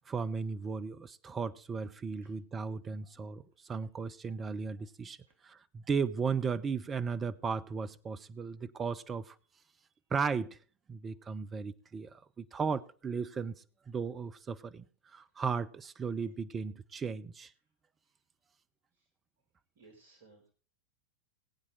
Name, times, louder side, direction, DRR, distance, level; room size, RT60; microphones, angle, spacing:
voice 1, 0.1-5.2 5.4-9.3 10.1-10.6 10.9-13.5 13.9-14.8 15.1-17.5, right 5 dB, 20° right, 0.8 m, -35 dB
voice 2, 19.8-20.5, right 3 dB, 55° right, 4.1 m, -61 dB
20.0 x 8.8 x 3.9 m
figure-of-eight pair, 90°, 0 cm